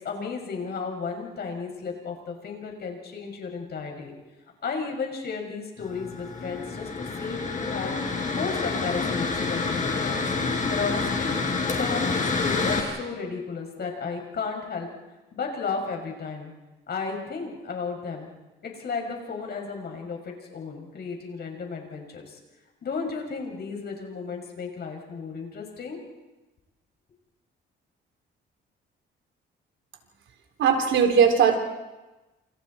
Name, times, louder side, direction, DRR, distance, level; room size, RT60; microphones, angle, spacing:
voice 1, 0.0-4.1 4.6-10.2 10.7-11.3 11.7-14.9 15.3-16.5 16.9-18.3 18.6-22.4 22.8-26.0, left 5 dB, 55° left, 1 dB, 6.6 m, -33 dB
Mechanical fan, 5.8-12.8, left 4 dB, 40° left, 5.9 m, -28 dB
voice 2, 30.6-31.6, right 7 dB, 75° right, 4 dB, 3.5 m, -19 dB
29.0 x 28.0 x 4.4 m, 1.1 s
cardioid pair, 90°, 20 cm